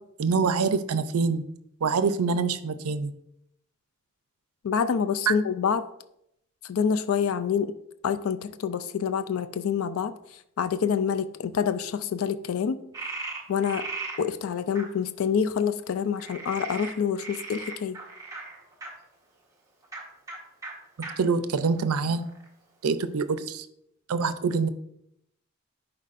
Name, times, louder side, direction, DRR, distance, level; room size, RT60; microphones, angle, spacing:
voice 1, 0.2-1.4 1.8-3.1 5.3-5.4 21.2-22.2 22.8-23.7 24.1-24.7, right 5 dB, 85° right, 12 dB, 0.5 m, -25 dB
voice 2, 4.6-5.8 6.7-7.7 8.0-10.1 10.6-12.8 13.5-13.8 14.2-18.0, left 7 dB, 70° left, 11 dB, 0.4 m, -27 dB
Frog, 12.9-14.2 14.7-14.9 16.2-18.9 19.8-20.0 20.3-20.4 20.6-20.7 21.0-21.1 21.7-22.5, right 3 dB, 15° right, 1.1 m, -37 dB
10.5 x 4.5 x 2.5 m, 0.77 s
head